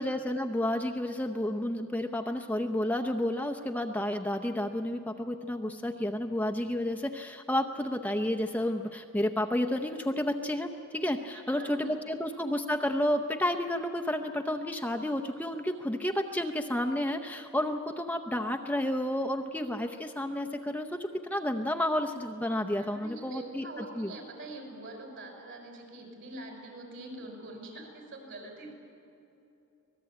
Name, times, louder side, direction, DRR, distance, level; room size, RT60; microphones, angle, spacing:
voice 1, 0.0-24.1, left 1 dB, 5° left, 4 dB, 0.7 m, -31 dB
voice 2, 11.3-12.2 22.7-28.7, right 2 dB, 55° right, 2 dB, 5.9 m, -44 dB
25.5 x 19.0 x 8.7 m, 2.9 s
head